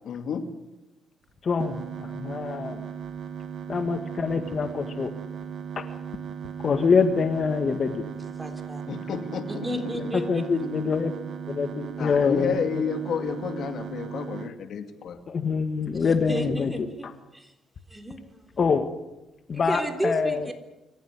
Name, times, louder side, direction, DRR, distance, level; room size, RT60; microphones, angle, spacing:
voice 1, 0.0-0.5 8.9-9.7 10.6-10.7 12.0-15.2, left 6 dB, 65° left, 8 dB, 2.3 m, -31 dB
voice 2, 1.4-2.8 3.7-5.1 5.7-5.8 6.6-8.0 9.9-11.1 11.5-12.8 15.3-17.1 18.6-18.9 19.5-20.5, left 5 dB, 45° left, 8 dB, 1.8 m, -25 dB
sound 1, 1.6-14.5, right 7 dB, 65° right, 1.8 m, -37 dB
voice 3, 8.4-8.8 9.5-10.4 15.9-17.1 17.3-17.5 17.9-18.5 19.5-20.5, right 1 dB, 10° right, 6 dB, 3.6 m, -32 dB
25.5 x 15.0 x 9.7 m, 0.97 s
cardioid pair, 90°, 0 cm